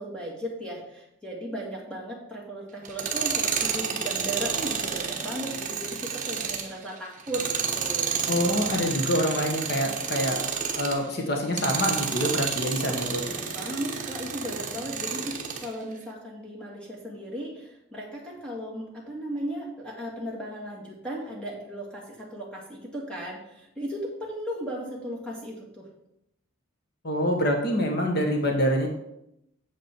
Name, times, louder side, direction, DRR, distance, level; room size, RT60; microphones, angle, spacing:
voice 1, 0.0-8.2 12.9-25.9, equal, 5° left, -4 dB, 1.9 m, -36 dB
Tools, 2.8-11.0 11.5-15.7, right 6 dB, 35° right, 1.1 m, -30 dB
voice 2, 8.3-10.4 10.7-13.2 27.0-28.9, equal, 50° left, 2 dB, 1.3 m, -26 dB
8.4 x 7.3 x 4.5 m, 0.81 s
head